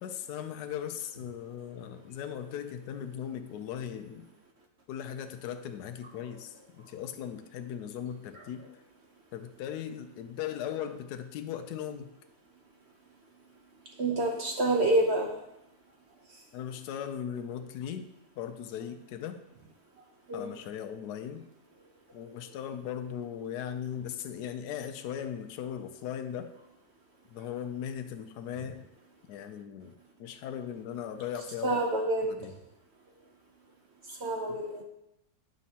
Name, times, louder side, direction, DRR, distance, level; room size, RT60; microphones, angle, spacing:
voice 1, 0.0-4.2 4.9-8.6 9.3-12.1 16.5-19.4 20.3-21.4 22.1-26.5 27.3-28.8 29.3-31.8 32.3-32.5 34.5-34.6, left 9 dB, 70° left, 8 dB, 1.1 m, -38 dB
voice 2, 14.0-15.4 20.3-20.5 31.6-32.5 34.1-34.8, right 2 dB, 60° right, 2 dB, 0.7 m, -28 dB
9.2 x 6.2 x 2.8 m, 0.87 s
omnidirectional pair, 2.0 m